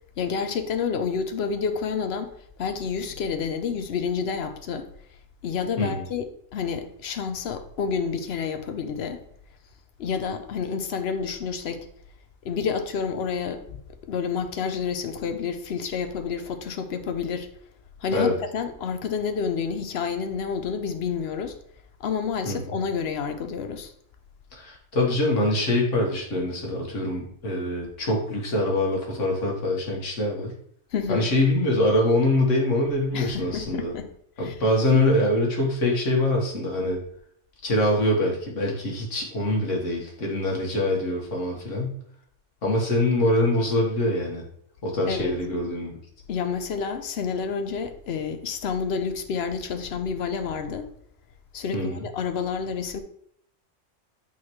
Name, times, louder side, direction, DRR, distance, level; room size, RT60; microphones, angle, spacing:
voice 1, 0.2-2.3 2.6-4.9 5.4-9.2 10.0-11.9 12.4-13.8 14.0-17.5 18.0-21.6 22.0-23.9 30.9-31.3 33.1-34.1 34.4-34.6 45.1-45.4 46.3-50.9 51.5-53.0, left 6 dB, 60° left, 0.9 m, -29 dB
voice 2, 24.5-30.5 31.1-33.9 34.4-37.0 37.6-41.9 42.6-44.4 44.8-46.0 51.7-52.0, left 1 dB, 80° left, 1.9 m, -24 dB
8.6 x 4.0 x 3.1 m
omnidirectional pair, 1.3 m